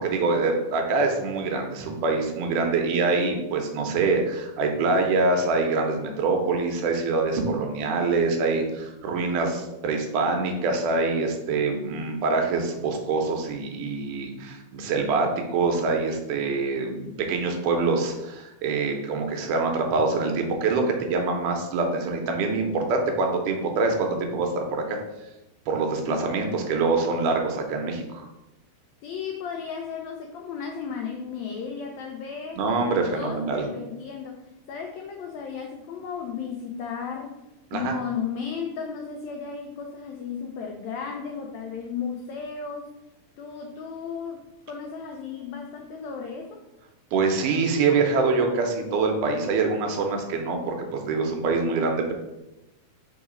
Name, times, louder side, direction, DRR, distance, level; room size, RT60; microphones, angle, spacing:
voice 1, 0.0-25.0 25.7-28.2 32.6-33.7 37.7-37.9 47.1-52.1, right 3 dB, 75° right, 3 dB, 2.2 m, -25 dB
voice 2, 29.0-37.4 37.7-42.9 43.4-46.6, left 6 dB, 85° left, 2 dB, 1.6 m, -34 dB
5.0 x 3.9 x 5.0 m, 0.96 s
omnidirectional pair, 3.8 m